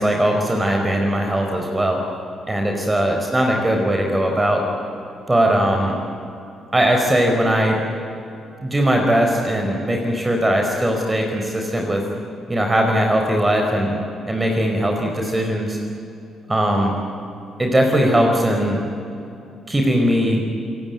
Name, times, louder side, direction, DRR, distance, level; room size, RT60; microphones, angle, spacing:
voice 1, 0.0-2.0 2.5-4.6 5.3-5.9 6.7-7.8 8.6-12.0 12.5-14.0 14.2-15.8 16.5-16.9 17.6-18.8 19.7-20.4, right 1 dB, 20° right, 2 dB, 4.6 m, -19 dB
27.0 x 18.5 x 9.3 m, 2.7 s
figure-of-eight pair, 40°, 0 cm